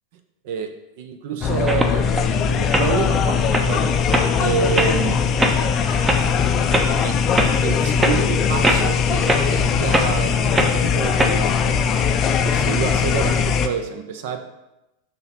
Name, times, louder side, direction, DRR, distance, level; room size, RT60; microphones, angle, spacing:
voice 1, 1.0-5.2 5.9-6.3 7.0-12.0 12.4-14.4, right 7 dB, 50° right, 7 dB, 0.5 m, -28 dB
sound 1, 1.4-13.7, left 6 dB, 30° left, 0.4 m, -20 dB
sound 2, 1.7-2.2 2.6-2.9 3.3-3.7 4.1-4.3 4.8-4.9 5.4-5.6 6.1-6.2 6.7-6.9 7.3-7.5 8.0-8.2 8.6-8.9 9.3-9.4 9.9-10.1 10.5-10.7 11.2-11.3, right 1 dB, 15° right, 0.7 m, -20 dB
6.4 x 3.0 x 5.7 m, 0.94 s
figure-of-eight pair, 85°, 0 cm